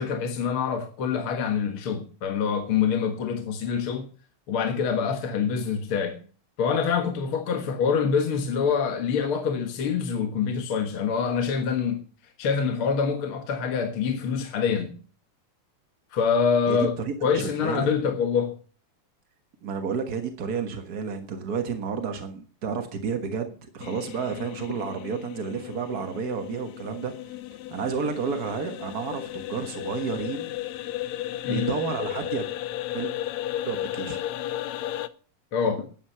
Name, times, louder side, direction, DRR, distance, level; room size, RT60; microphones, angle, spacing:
voice 1, 0.0-4.1 4.5-6.2 6.6-12.0 12.4-15.0 16.1-17.0 17.2-18.6 31.5-31.7 35.5-35.9, left 6 dB, 50° left, 1.7 m, -25 dB
voice 2, 16.7-17.9 19.6-27.1 27.7-30.5 31.5-32.5 32.9-33.1 33.6-34.2, right 6 dB, 70° right, 0.9 m, -31 dB
sound 1, 23.8-35.1, left 13 dB, 80° left, 1.6 m, -34 dB
12.5 x 10.0 x 5.6 m
omnidirectional pair, 3.9 m